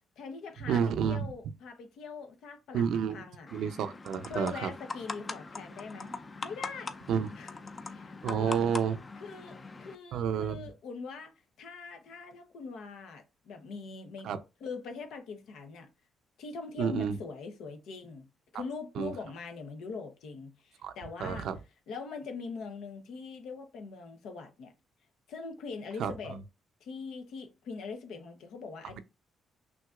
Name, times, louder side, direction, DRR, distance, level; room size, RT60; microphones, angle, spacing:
voice 1, 0.2-2.8 3.1-3.5 4.3-6.1 6.4-7.0 7.3-7.5 7.8-8.6 9.1-14.3 14.6-15.9 16.4-18.3 18.5-21.5 21.9-24.7 25.3-26.4 26.8-29.0, left 4 dB, 80° left, 0.9 m, -42 dB
voice 2, 0.7-1.3 2.7-3.2 3.5-4.7 7.1-7.3 8.2-9.0 10.1-10.7 14.2-14.4 16.8-17.2 19.0-19.1 20.8-20.9 21.2-21.6 26.0-26.4, right 7 dB, 80° right, 0.5 m, -30 dB
sound 1, 3.5-9.9, left 3 dB, 30° left, 0.5 m, -42 dB
6.0 x 2.7 x 2.4 m
cardioid pair, 90°, 0 cm